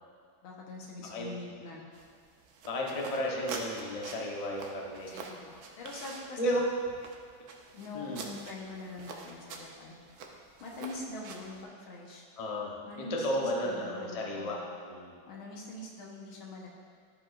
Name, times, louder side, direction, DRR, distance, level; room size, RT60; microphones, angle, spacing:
voice 1, 0.4-1.8 5.1-6.6 7.7-10.0 10.6-12.2 12.8-14.6 15.3-16.7, left 2 dB, 85° left, -2 dB, 1.9 m, -44 dB
voice 2, 1.0-1.3 2.6-5.1 6.4-6.7 7.9-8.2 12.4-14.6 14.8-15.1, equal, 45° left, -2 dB, 0.4 m, -33 dB
sound 1, 1.9-11.6, right 4 dB, 65° right, 1.0 m, -46 dB
13.0 x 5.1 x 2.4 m, 2.2 s
omnidirectional pair, 2.2 m